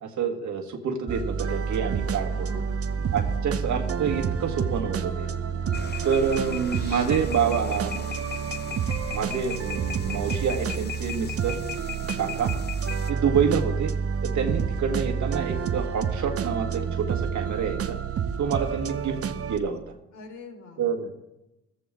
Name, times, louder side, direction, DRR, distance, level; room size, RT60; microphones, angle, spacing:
voice 1, 0.0-2.5 3.1-5.3 6.0-8.0 9.1-11.6 12.2-12.5 13.1-13.9 14.2-18.0 18.4-19.2 19.5-19.9 20.8-21.1, right 6 dB, 65° right, 3 dB, 1.8 m, -27 dB
sound 1, 1.1-19.6, right 7 dB, 50° right, 0.9 m, -29 dB
voice 2, 2.3-3.2 5.6-6.0 20.1-20.9, left 4 dB, 65° left, 4 dB, 3.4 m, -45 dB
sound 2, 5.7-13.1, left 8 dB, 35° left, 0.8 m, -38 dB
14.5 x 14.0 x 3.7 m, 0.91 s
cardioid pair, 85°, 31 cm